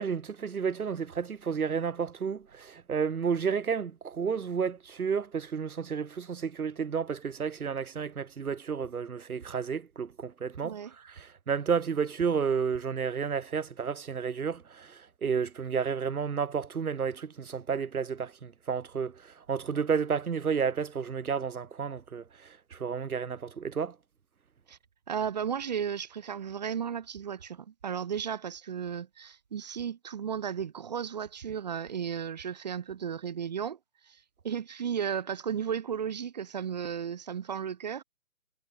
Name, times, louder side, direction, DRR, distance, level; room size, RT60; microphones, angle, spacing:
voice 1, 0.0-10.8 11.0-22.2 22.7-23.9, right 6 dB, 80° right, 1.2 m, -31 dB
voice 2, 25.1-33.8 34.1-38.0, right 8 dB, 30° right, 1.1 m, -34 dB
hypercardioid pair, 155°, 43 cm